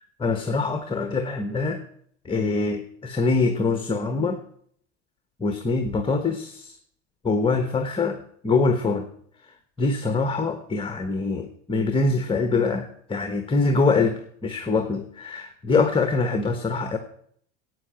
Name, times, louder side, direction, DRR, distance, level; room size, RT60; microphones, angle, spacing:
voice 1, 0.2-1.8 2.2-4.4 5.4-6.7 7.2-9.1 9.8-17.0, left 3 dB, 15° left, 7 dB, 1.2 m, -24 dB
11.0 x 8.8 x 8.7 m, 0.65 s
supercardioid pair, 115°, 34 cm